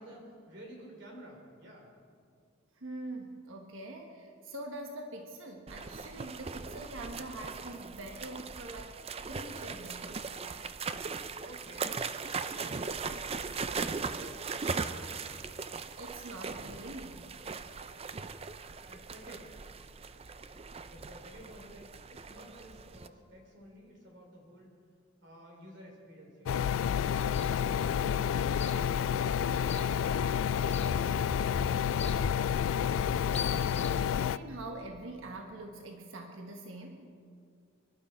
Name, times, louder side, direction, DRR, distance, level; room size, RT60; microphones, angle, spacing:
voice 1, 0.0-1.9 11.1-12.0 12.4-13.4 14.1-14.5 14.8-15.4 18.9-19.5 20.9-24.7 25.2-26.8 27.3-32.4, equal, 60° right, 0 dB, 3.6 m, -52 dB
voice 2, 2.7-9.0 9.3-10.4 16.0-17.3 33.7-37.1, right 1 dB, 80° right, 2 dB, 1.3 m, -44 dB
sound 1, 5.7-23.1, right 5 dB, 30° right, 0.5 m, -39 dB
sound 2, 26.5-34.4, left 8 dB, 85° left, 0.3 m, -29 dB
sound 3, 27.1-34.0, left 2 dB, 35° left, 0.8 m, -41 dB
24.0 x 12.0 x 4.4 m, 2.2 s
head